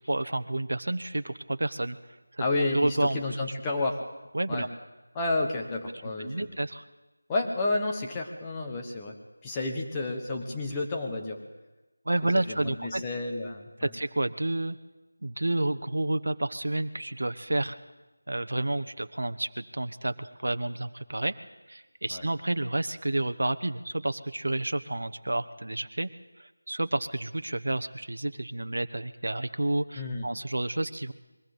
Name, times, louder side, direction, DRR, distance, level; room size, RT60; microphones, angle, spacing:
voice 1, 0.1-2.0 2.3-2.4 2.7-3.2 4.3-4.7 6.2-6.8 12.1-13.0 13.8-14.8 15.2-17.8 18.3-21.3 21.7-26.1 26.4-31.1, right 1 dB, 70° right, 9 dB, 1.0 m, -30 dB
voice 2, 2.4-4.0 4.5-4.7 5.1-6.5 7.3-9.2 9.4-11.4 12.5-13.9 22.1-22.2 29.9-30.3, left 2 dB, 10° left, 0 dB, 1.3 m, -31 dB
21.5 x 15.0 x 8.1 m, 1.1 s
figure-of-eight pair, 175°, 0 cm